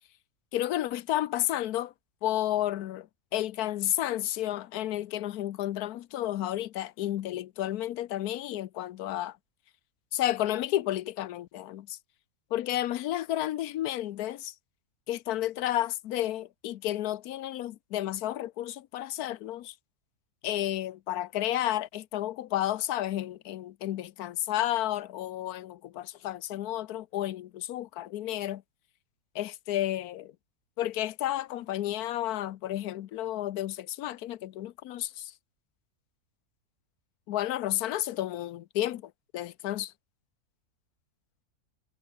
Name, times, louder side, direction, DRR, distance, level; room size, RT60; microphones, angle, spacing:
voice 1, 0.5-1.9 2.2-9.4 10.1-12.0 12.5-14.5 15.1-19.7 20.4-28.6 29.3-30.3 30.8-35.3 37.3-39.9, left 13 dB, 90° left, 1.2 m, -31 dB
omnidirectional pair, 1.6 m